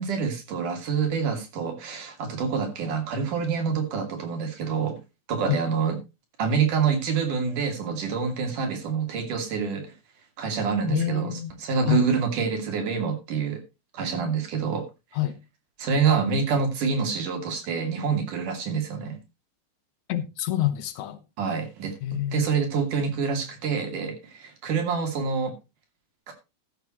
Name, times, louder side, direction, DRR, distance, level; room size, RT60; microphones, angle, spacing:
voice 1, 0.0-5.0 5.3-6.0 6.4-9.9 10.4-11.3 11.6-13.6 13.9-14.8 15.8-19.2 21.4-21.9 22.3-25.5 26.3-26.4, right 5 dB, 80° right, 4.2 m, -26 dB
voice 2, 10.9-11.5 11.9-12.1 15.1-15.4 20.1-21.2 22.0-22.5, left 13 dB, 70° left, 2.3 m, -27 dB
14.0 x 11.0 x 3.0 m
omnidirectional pair, 3.6 m